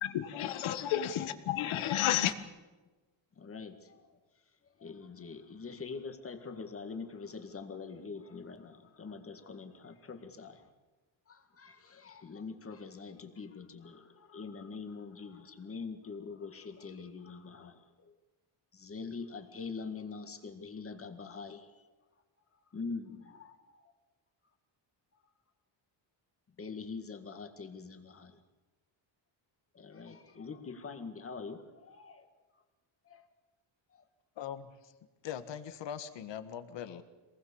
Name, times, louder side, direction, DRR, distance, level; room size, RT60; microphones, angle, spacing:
voice 1, 0.0-2.3, left 11 dB, 85° left, 9 dB, 1.8 m, -31 dB
voice 2, 3.4-4.2 4.8-10.7 11.3-18.1 18.7-21.8 22.7-23.9 26.6-28.4 29.7-32.3 33.1-33.3 33.9-34.0, left 4 dB, 30° left, 7 dB, 2.0 m, -44 dB
voice 3, 34.4-34.9 35.2-37.0, left 9 dB, 65° left, 10 dB, 1.7 m, -41 dB
26.0 x 20.0 x 7.2 m, 1.2 s
cardioid pair, 170°, 47 cm